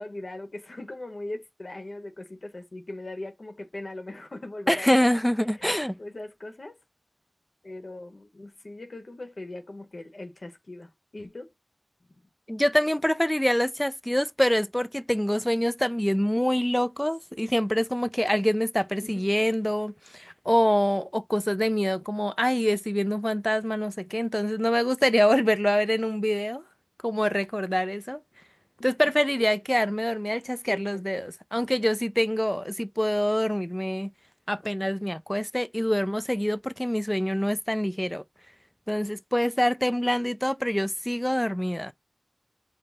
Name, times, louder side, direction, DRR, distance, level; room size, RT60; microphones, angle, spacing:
voice 1, 0.0-5.1 5.5-6.8 7.6-11.5 12.1-12.2 19.0-19.3 28.8-28.9 29.4-29.5 30.3-31.0, left 2 dB, 75° left, 0.9 m, -40 dB
voice 2, 4.7-6.0 12.5-26.6 27.0-28.2 28.8-34.1 34.5-38.2 38.9-41.9, equal, 10° left, 0.4 m, -25 dB
5.1 x 2.1 x 3.8 m
wide cardioid pair, 50°, 0 cm